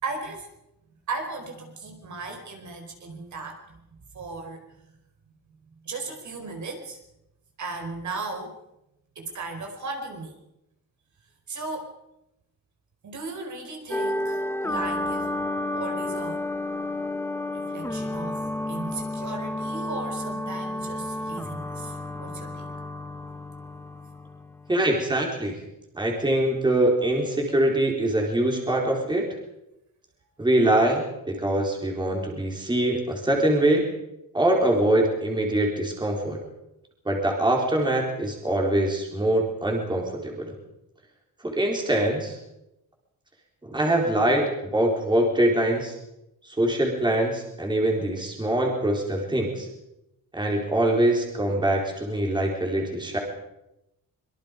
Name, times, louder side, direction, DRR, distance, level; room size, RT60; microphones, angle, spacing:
voice 1, 0.0-0.5 1.1-3.8 4.1-4.6 5.8-7.0 7.6-8.6 9.1-10.3 11.5-11.9 13.0-15.3 15.7-16.4 17.5-18.4 18.7-22.7, right 3 dB, 50° right, 3 dB, 4.6 m, -36 dB
sound 1, 13.9-24.9, left 1 dB, 5° left, 0.9 m, -31 dB
voice 2, 24.7-25.6 25.9-29.3 30.4-33.9 34.3-36.4 37.0-40.5 41.4-42.4 43.6-46.0 46.4-49.7 50.3-53.2, right 1 dB, 10° right, 0 dB, 4.2 m, -23 dB
25.5 x 23.5 x 5.3 m, 0.88 s
wide cardioid pair, 175°, 38 cm